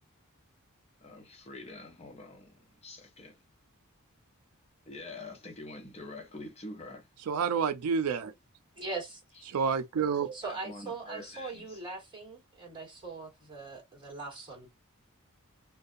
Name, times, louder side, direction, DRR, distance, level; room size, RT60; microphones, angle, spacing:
voice 1, 1.0-3.4 4.9-7.1 9.4-9.6 10.4-11.8, left 2 dB, 30° left, 0.6 m, -46 dB
voice 2, 7.3-8.3 9.5-10.4, right 6 dB, 75° right, 0.4 m, -29 dB
voice 3, 8.7-9.2 10.3-14.7, right 3 dB, 20° right, 1.5 m, -41 dB
2.6 x 2.2 x 2.4 m
head